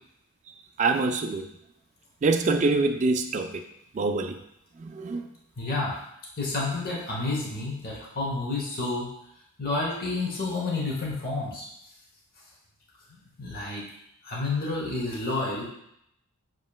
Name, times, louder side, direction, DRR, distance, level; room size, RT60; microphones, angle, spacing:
voice 1, 0.8-1.5 2.2-3.5 4.0-4.4 4.8-5.2, right 3 dB, 35° right, 6 dB, 0.3 m, -25 dB
voice 2, 5.6-5.9 6.4-9.1 9.6-11.7 13.4-13.8 14.2-15.6, left 3 dB, 45° left, -3 dB, 1.0 m, -30 dB
7.1 x 3.0 x 2.3 m, 0.77 s
head